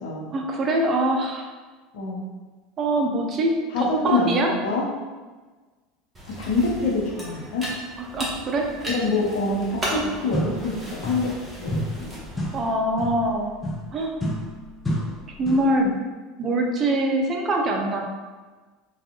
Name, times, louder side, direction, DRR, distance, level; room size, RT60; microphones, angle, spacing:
voice 1, 0.3-1.5 2.8-4.5 8.0-8.7 12.5-13.6 13.9-14.2 15.4-15.9 16.4-18.0, right 1 dB, 35° right, 1 dB, 0.6 m, -23 dB
voice 2, 3.7-4.9 6.4-7.7 8.9-10.8 11.0-11.3 11.6-12.2, left 3 dB, 70° left, -2 dB, 0.8 m, -25 dB
sound 1, 6.1-12.7, equal, 20° right, 1.2 m, -35 dB
sound 2, 10.3-11.4 11.7-15.8, equal, 20° left, 0.6 m, -31 dB
3.4 x 2.4 x 2.9 m, 1.3 s
hypercardioid pair, 80°, 0 cm